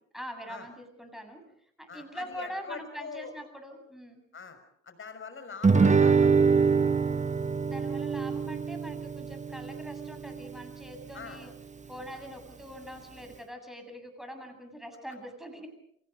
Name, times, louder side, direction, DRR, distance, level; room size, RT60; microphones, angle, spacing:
voice 1, 0.1-1.4 1.8-4.2 7.6-11.5 11.9-15.7, equal, ahead, 5 dB, 7.7 m, -43 dB
voice 2, 1.9-3.3 4.3-4.6 4.8-7.0 11.1-11.4, left 5 dB, 30° left, 9 dB, 5.8 m, -43 dB
Guitar, 5.6-10.7, right 5 dB, 20° right, 1.6 m, -25 dB
29.5 x 27.0 x 5.3 m, 0.71 s
figure-of-eight pair, 50°, 39 cm